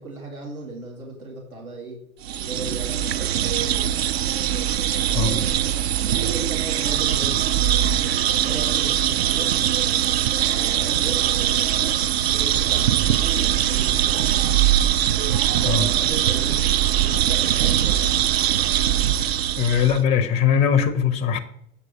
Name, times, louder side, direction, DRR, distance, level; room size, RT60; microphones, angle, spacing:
voice 1, 0.0-2.0 2.4-3.9 5.1-5.6 6.0-7.6 8.4-9.5 10.3-14.3 15.6-18.3, right 2 dB, 80° right, -3 dB, 2.6 m, -37 dB
sound 1, 2.2-20.0, right 11 dB, 50° right, 0.6 m, -21 dB
voice 2, 19.6-21.4, left 7 dB, 15° left, 10 dB, 0.5 m, -20 dB
8.0 x 6.6 x 4.2 m, 0.71 s
figure-of-eight pair, 95°, 42 cm